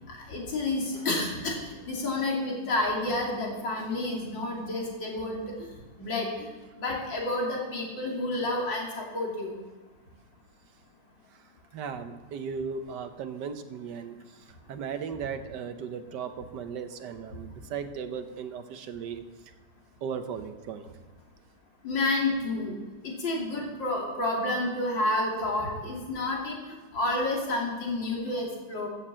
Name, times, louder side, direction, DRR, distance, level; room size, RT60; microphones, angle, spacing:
voice 1, 0.3-1.6 1.9-5.4 6.0-6.5 6.8-9.5 21.8-22.8 23.0-26.6 26.9-28.9, left 2 dB, 85° left, -2 dB, 3.4 m, -29 dB
voice 2, 11.7-19.3 20.0-20.9, right 6 dB, 70° right, 9 dB, 1.5 m, -37 dB
14.5 x 6.9 x 7.4 m, 1.3 s
omnidirectional pair, 2.0 m